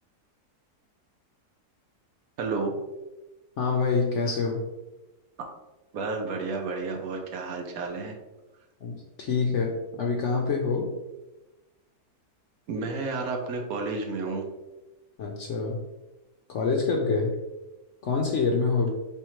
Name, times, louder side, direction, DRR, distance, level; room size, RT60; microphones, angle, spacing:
voice 1, 2.4-2.8 5.9-8.1 12.7-14.4, right 3 dB, 70° right, 2 dB, 1.1 m, -31 dB
voice 2, 3.6-4.6 8.8-10.9 15.2-15.8 16.5-17.3 18.0-18.9, left 4 dB, 65° left, 0 dB, 0.8 m, -26 dB
4.5 x 3.5 x 3.0 m, 1.1 s
omnidirectional pair, 1.7 m